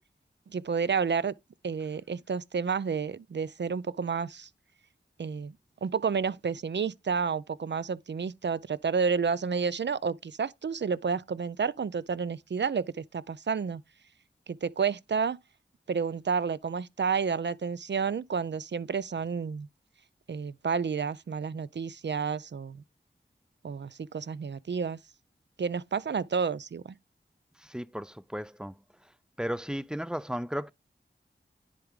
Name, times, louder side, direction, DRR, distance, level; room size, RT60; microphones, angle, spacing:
voice 1, 0.5-1.3 1.6-4.5 5.2-5.5 5.8-13.8 14.5-15.4 15.9-19.7 20.3-22.8 23.6-25.0 25.6-26.9, right 6 dB, 65° right, 0.4 m, -30 dB
voice 2, 27.7-28.7 29.4-30.7, equal, 5° right, 0.4 m, -34 dB
10.0 x 3.5 x 3.6 m
wide cardioid pair, 40°, 20 cm